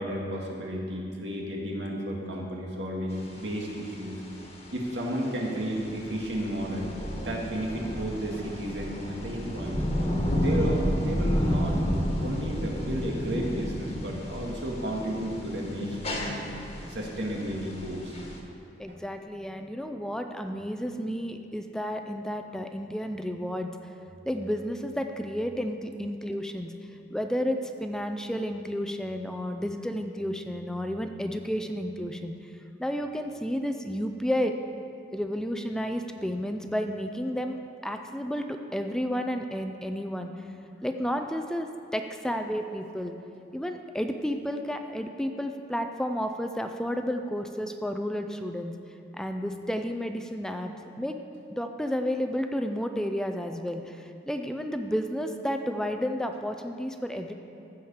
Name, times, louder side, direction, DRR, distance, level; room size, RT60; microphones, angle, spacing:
voice 1, 0.0-4.2 4.7-10.0 10.3-11.9 12.2-18.2, equal, 85° right, -1 dB, 1.9 m, -33 dB
sound 1, 3.1-18.4, equal, 35° left, 1.5 m, -31 dB
voice 2, 18.8-23.9 24.3-26.7 27.1-32.3 32.8-34.6 35.1-40.3 40.8-43.1 43.5-48.7 49.2-51.2 51.5-57.3, equal, 5° left, 6 dB, 0.4 m, -31 dB
15.0 x 5.1 x 7.1 m, 2.6 s
head